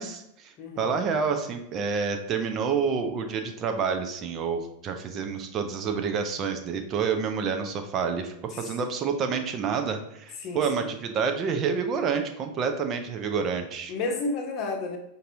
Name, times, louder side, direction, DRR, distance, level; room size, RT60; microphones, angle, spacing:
voice 1, 0.0-13.9, right 6 dB, 30° right, 6 dB, 0.4 m, -28 dB
voice 2, 10.4-10.9 13.9-15.0, left 3 dB, 35° left, 2 dB, 0.8 m, -31 dB
5.2 x 2.6 x 2.7 m, 0.80 s
figure-of-eight pair, 90°, 0 cm